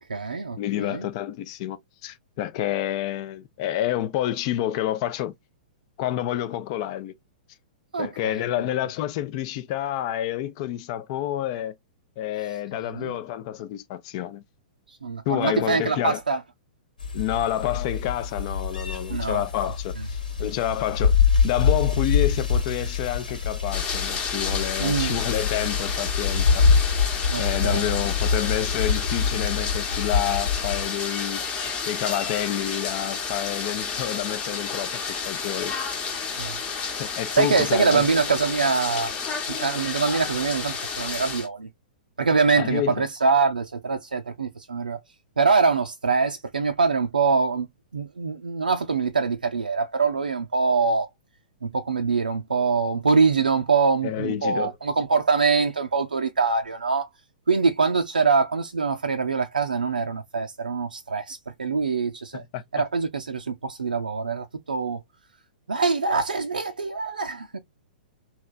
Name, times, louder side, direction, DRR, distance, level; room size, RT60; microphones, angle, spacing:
voice 1, 0.0-1.1 7.9-8.7 12.9-13.2 14.9-16.4 19.1-19.4 24.8-25.1 27.3-27.9 36.4-36.6 37.4-39.1 39.5-41.7 42.2-45.0 45.4-47.7 47.9-51.1 51.6-57.1 57.5-62.4 62.7-65.0 65.7-67.6, right 4 dB, 75° right, 0.4 m, -24 dB
voice 2, 0.6-5.3 6.0-7.1 8.0-11.7 12.2-14.4 15.3-16.2 17.1-21.2 21.4-26.9 27.4-31.4 31.9-35.7 37.0-38.1 42.6-43.0 54.0-54.7 62.3-62.6, left 12 dB, 40° left, 0.5 m, -29 dB
sound 1, 17.0-30.9, left 5 dB, 80° left, 1.5 m, -25 dB
sound 2, 23.7-41.5, left 5 dB, 25° left, 0.9 m, -31 dB
3.2 x 2.9 x 2.4 m
figure-of-eight pair, 110°, 5 cm